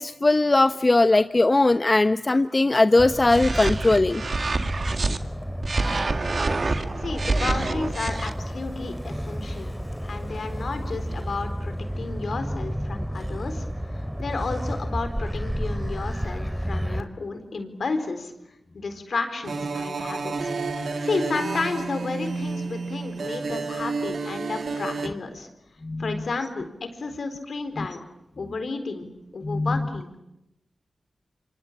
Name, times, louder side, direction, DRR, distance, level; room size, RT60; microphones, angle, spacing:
voice 1, 0.0-4.2 25.8-26.2 27.8-27.9 29.4-29.9, left 2 dB, 40° left, 11 dB, 0.9 m, -20 dB
Motor vehicle (road), 3.0-17.0, equal, 5° right, 2.8 m, -31 dB
sound 1, 3.3-5.2 5.6-8.3, right 3 dB, 60° right, 2.0 m, -27 dB
voice 2, 7.0-9.7 10.0-18.3 18.7-20.5 20.8-25.5 26.0-28.0 28.4-29.1 29.3-30.2, left 3 dB, 75° left, 8 dB, 4.2 m, -32 dB
sound 2, 19.4-25.1, right 4 dB, 80° right, 2.1 m, -30 dB
26.5 x 25.5 x 8.7 m, 0.88 s
cardioid pair, 40°, 0 cm